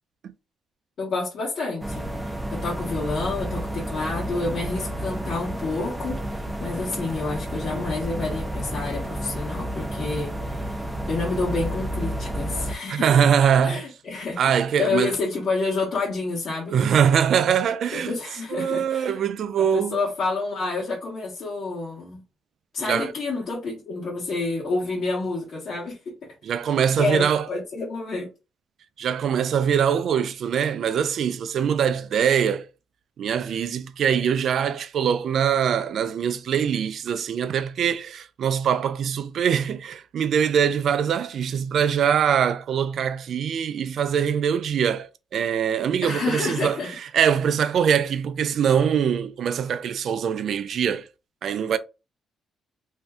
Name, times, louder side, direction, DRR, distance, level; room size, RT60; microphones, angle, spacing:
voice 1, 1.0-10.8 11.1-13.2 13.6-16.8 17.9-19.2 19.6-22.2 22.7-26.1 27.0-28.3 46.0-47.0, left 3 dB, 55° left, 1.1 m, -29 dB
sound 1, 1.8-12.8, right 1 dB, 10° right, 0.5 m, -31 dB
voice 2, 12.9-13.8 14.4-15.1 16.7-18.1 18.5-20.0 22.9-23.1 26.4-27.5 29.0-32.7 33.2-46.8 47.1-51.1 51.4-51.8, right 8 dB, 65° right, 0.3 m, -23 dB
2.6 x 2.2 x 3.4 m
cardioid pair, 90°, 0 cm